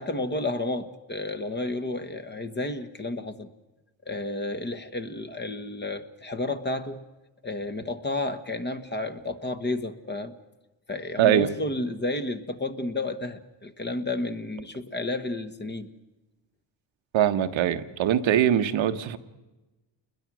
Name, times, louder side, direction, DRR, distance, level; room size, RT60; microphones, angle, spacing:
voice 1, 0.0-3.5 4.1-7.0 7.4-10.3 10.9-15.9, left 2 dB, 20° left, 1.3 m, -31 dB
voice 2, 11.2-11.5 17.1-19.2, right 10 dB, 70° right, 1.2 m, -22 dB
29.0 x 21.5 x 6.2 m
cardioid pair, 115°, 48 cm